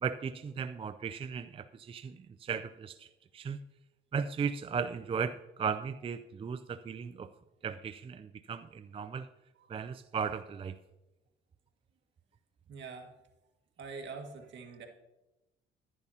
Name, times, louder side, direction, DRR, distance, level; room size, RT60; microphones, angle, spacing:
voice 1, 0.0-3.1 3.3-3.6 4.1-7.3 7.6-9.3 9.7-10.8, right 6 dB, 30° right, 11 dB, 0.4 m, -36 dB
voice 2, 9.6-9.9 12.7-13.2 13.8-14.9, right 4 dB, 65° right, 2 dB, 1.7 m, -45 dB
11.0 x 10.5 x 2.8 m, 1.0 s
cardioid pair, 90°, 20 cm